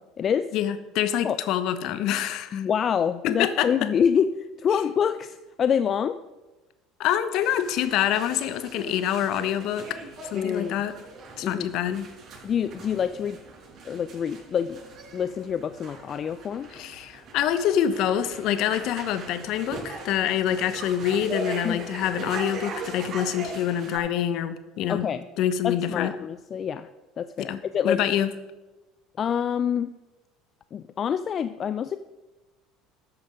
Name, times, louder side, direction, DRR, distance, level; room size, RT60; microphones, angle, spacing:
voice 1, 0.0-0.5 1.2-1.4 2.5-6.2 10.3-10.7 11.4-11.7 12.4-13.4 13.8-14.8 15.1-16.7 21.6-21.8 24.9-25.2 25.6-26.9 27.2-28.0 29.2-29.9 30.7-32.0, left 7 dB, 40° left, 12 dB, 0.5 m, -26 dB
voice 2, 0.5-2.6 3.2-3.7 7.0-10.0 10.3-10.9 11.4-12.1 16.7-25.1 25.4-26.1 27.5-28.3, left 10 dB, 60° left, 12 dB, 1.1 m, -26 dB
sound 1, 7.4-24.0, right 2 dB, 50° right, 4.9 m, -40 dB
13.5 x 8.9 x 5.2 m, 1.1 s
hypercardioid pair, 70°, 0 cm